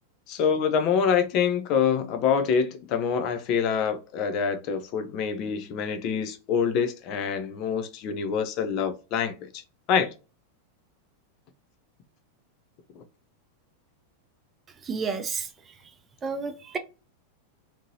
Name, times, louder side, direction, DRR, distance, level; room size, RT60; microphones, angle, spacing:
voice 1, 0.3-9.6 9.9-10.1 13.0-13.1, left 6 dB, 40° left, 0.6 m, -26 dB
voice 2, 14.8-15.7 16.2-16.8, right 5 dB, 20° right, 0.5 m, -31 dB
3.7 x 2.8 x 2.8 m
figure-of-eight pair, 90°, 0 cm